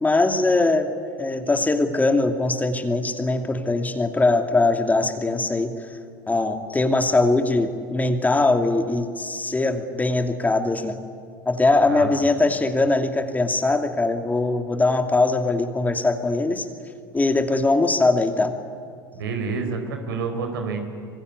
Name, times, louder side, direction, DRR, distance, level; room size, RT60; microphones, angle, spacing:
voice 1, 0.0-0.9 1.2-5.7 6.3-11.0 11.5-16.7 17.1-18.6, left 2 dB, 15° left, 6 dB, 2.5 m, -21 dB
voice 2, 19.1-20.8, right 4 dB, 75° right, 6 dB, 4.6 m, -28 dB
26.0 x 23.0 x 9.7 m, 2.3 s
hypercardioid pair, 80°, 12 cm